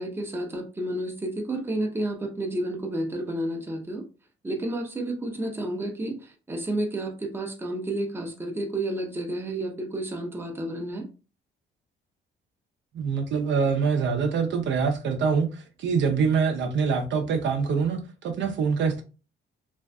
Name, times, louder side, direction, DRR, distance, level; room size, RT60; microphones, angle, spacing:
voice 1, 0.0-4.0 4.4-11.1, right 1 dB, 10° right, 3 dB, 0.6 m, -31 dB
voice 2, 12.9-19.0, right 5 dB, 65° right, 4 dB, 0.6 m, -25 dB
2.5 x 2.3 x 2.2 m, 0.32 s
cardioid pair, 90°, 20 cm